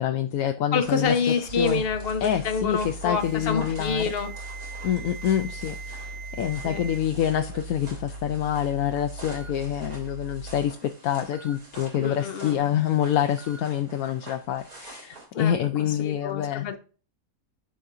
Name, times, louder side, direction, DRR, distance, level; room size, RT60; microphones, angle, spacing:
voice 1, 0.0-1.8 2.2-4.1 4.8-16.8, left 10 dB, 80° left, 1.0 m, -27 dB
voice 2, 0.7-4.3 6.6-6.8 12.0-12.5 15.3-15.6 15.9-16.8, left 5 dB, 45° left, 1.1 m, -27 dB
sound 1, 0.8-15.3, right 2 dB, 85° right, 4.0 m, -46 dB
sound 2, 1.5-10.7, right 1 dB, 60° right, 0.9 m, -40 dB
Alarm, 3.0-7.0 7.3-7.7 8.6-8.7 9.3-9.5 11.3-11.5 13.4-13.6, right 6 dB, 45° right, 1.6 m, -43 dB
11.0 x 4.2 x 2.6 m
omnidirectional pair, 1.5 m